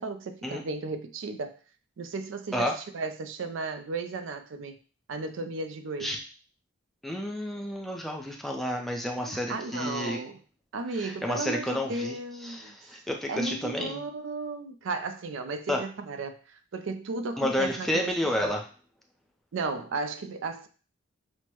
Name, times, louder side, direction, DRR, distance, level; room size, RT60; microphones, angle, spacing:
voice 1, 0.0-1.6 2.0-4.8 5.1-6.2 9.2-10.4 10.7-12.7 13.3-18.5 19.5-20.7, right 3 dB, 65° right, 0.4 m, -35 dB
voice 2, 7.0-10.2 11.0-12.1 12.4-14.0 15.7-15.8 17.4-18.6, left 1 dB, ahead, 0.5 m, -30 dB
6.2 x 2.1 x 2.9 m
head